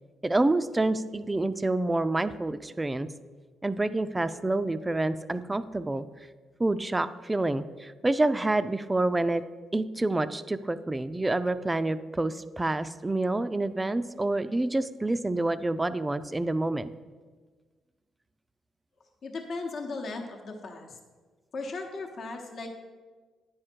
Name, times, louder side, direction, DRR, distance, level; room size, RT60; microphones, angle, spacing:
voice 1, 0.2-3.1 3.6-6.1 6.6-9.4 9.7-16.9, right 2 dB, 15° right, 13 dB, 0.4 m, -28 dB
voice 2, 19.2-21.0 21.5-22.8, left 3 dB, 55° left, 2 dB, 0.9 m, -37 dB
9.7 x 5.0 x 4.5 m, 1.4 s
cardioid pair, 90°, 0 cm